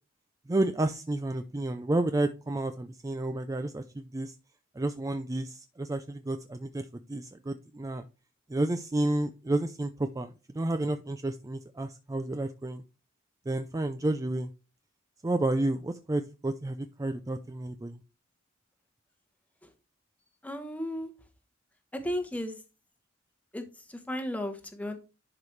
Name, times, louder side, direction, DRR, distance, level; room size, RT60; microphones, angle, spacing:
voice 1, 0.5-4.3 4.7-8.0 8.5-12.8 13.5-14.5 15.2-18.0, right 2 dB, 15° right, 9 dB, 0.4 m, -31 dB
voice 2, 20.4-21.1 21.9-22.6 23.5-23.6 23.9-25.0, left 1 dB, 5° left, 6 dB, 1.0 m, -34 dB
11.0 x 4.9 x 3.2 m, 0.30 s
head